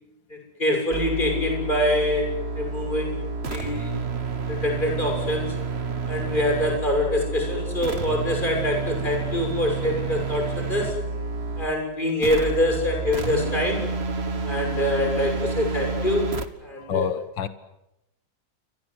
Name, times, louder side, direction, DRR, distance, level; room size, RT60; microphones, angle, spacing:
voice 1, 0.3-3.9 4.5-5.6 6.1-11.0 11.6-13.8 14.4-16.3 16.6-17.1, left 1 dB, 25° left, 2 dB, 7.2 m, -25 dB
sound 1, 0.9-11.8 12.2-16.5, right 4 dB, 35° right, 1.7 m, -29 dB
voice 2, 16.9-17.5, left 8 dB, 80° left, 11 dB, 2.2 m, -26 dB
28.5 x 24.5 x 8.1 m, 0.87 s
omnidirectional pair, 2.0 m